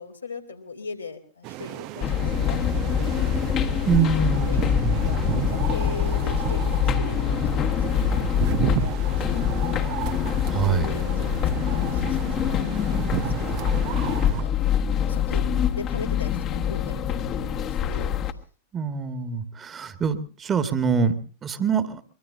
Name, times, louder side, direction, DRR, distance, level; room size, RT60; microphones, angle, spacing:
voice 1, 0.0-3.1 3.5-3.9 4.1-7.9 8.2-9.9 10.5-11.4 11.7-14.5 14.9-18.1, left 3 dB, 85° left, 0 dB, 2.7 m, -40 dB
sound 1, 1.4-14.4, right 15 dB, 40° right, 0.8 m, -33 dB
sound 2, 2.0-18.3, left 8 dB, 35° left, 1.4 m, -24 dB
voice 2, 3.9-5.0 10.5-10.9 18.7-22.0, right 6 dB, 25° right, 10 dB, 1.7 m, -25 dB
23.5 x 22.5 x 2.7 m, 0.40 s
figure-of-eight pair, 90°, 0 cm